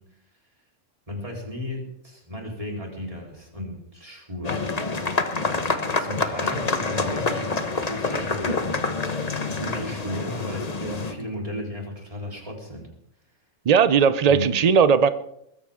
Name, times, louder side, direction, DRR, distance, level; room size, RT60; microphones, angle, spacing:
voice 1, 1.1-4.7 6.0-7.4 7.7-8.6 9.6-12.9 14.3-14.5, left 1 dB, 25° right, -1 dB, 4.0 m, -34 dB
sound 1, 4.4-11.1, left 3 dB, 30° left, 1.1 m, -27 dB
voice 2, 13.7-15.1, right 6 dB, 65° right, 12 dB, 0.4 m, -17 dB
21.0 x 15.0 x 3.7 m, 0.78 s
omnidirectional pair, 1.5 m